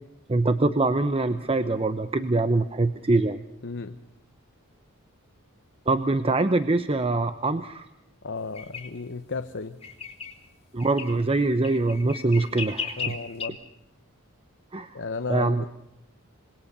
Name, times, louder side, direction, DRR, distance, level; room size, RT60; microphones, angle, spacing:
voice 1, 0.3-3.4 5.9-7.9 10.7-13.2 14.7-15.0 15.3-15.6, right 2 dB, 25° right, 11 dB, 0.8 m, -24 dB
voice 2, 3.6-4.0 8.2-9.8 13.0-13.6 14.9-15.7, left 4 dB, 55° left, 9 dB, 0.9 m, -33 dB
sound 1, 8.5-8.9 9.8-10.4 10.8-11.1 11.6-13.5, left 6 dB, 30° left, 3.6 m, -35 dB
26.5 x 21.5 x 6.8 m, 0.87 s
head